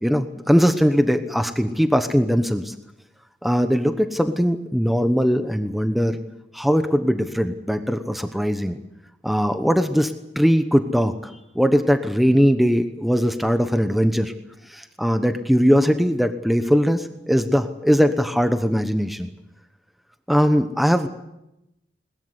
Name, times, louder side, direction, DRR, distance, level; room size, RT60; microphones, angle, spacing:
voice 1, 0.0-2.7 3.4-6.2 6.5-8.8 9.2-14.3 14.7-19.3 20.3-21.1, equal, ahead, 8 dB, 1.1 m, -20 dB
21.5 x 21.0 x 8.2 m, 0.88 s
head